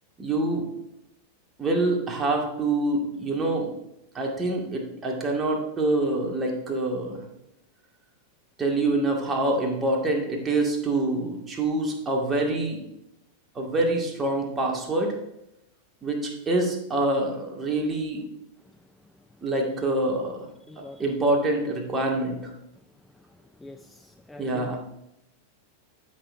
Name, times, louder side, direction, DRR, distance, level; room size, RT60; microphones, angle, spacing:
voice 1, 0.2-0.7 1.6-3.7 4.1-7.2 8.6-12.8 13.6-15.1 16.0-18.2 19.4-20.5 21.0-22.5 24.4-24.8, right 2 dB, 20° right, 0 dB, 2.1 m, -26 dB
voice 2, 20.7-21.0 23.6-24.8, left 2 dB, 5° left, 8 dB, 0.4 m, -44 dB
12.5 x 6.4 x 2.7 m, 0.83 s
figure-of-eight pair, 90°, 0 cm